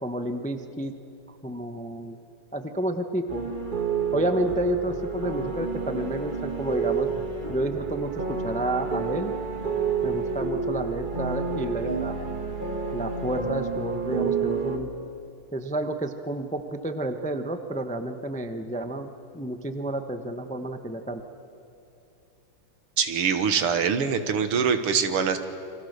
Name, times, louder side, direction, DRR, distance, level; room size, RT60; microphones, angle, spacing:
voice 1, 0.0-0.9 1.4-2.2 2.5-3.5 4.1-7.1 7.5-9.3 10.0-12.3 12.9-14.9 15.5-19.1 19.3-21.2, right 1 dB, 5° left, 7 dB, 0.6 m, -30 dB
sound 1, 3.3-14.8, right 5 dB, 25° right, 2.0 m, -29 dB
voice 2, 23.0-25.4, right 6 dB, 85° right, 9 dB, 2.3 m, -24 dB
29.0 x 24.5 x 6.8 m, 2.8 s
omnidirectional pair, 2.4 m